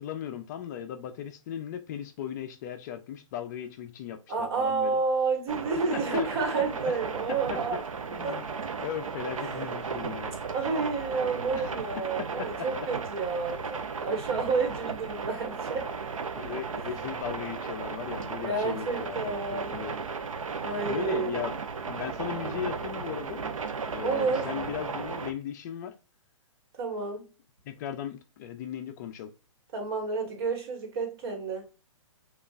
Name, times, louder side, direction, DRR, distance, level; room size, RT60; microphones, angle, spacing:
voice 1, 0.0-5.0 5.9-6.3 6.8-7.0 7.5-8.4 8.8-10.4 11.5-11.7 12.2-12.5 16.3-19.2 19.5-20.0 20.9-21.6 21.9-23.5 23.8-25.9 27.6-29.3, left 9 dB, 35° left, 0.4 m, -37 dB
voice 2, 4.3-7.8 8.2-8.4 9.4-9.6 10.5-15.9 18.4-19.8 20.6-21.5 24.0-24.5 26.8-27.2 29.7-31.6, right 4 dB, 50° right, 1.4 m, -30 dB
sound 1, 5.5-25.3, right 5 dB, 85° right, 0.6 m, -35 dB
5.2 x 2.4 x 2.4 m
hypercardioid pair, 135°, 17 cm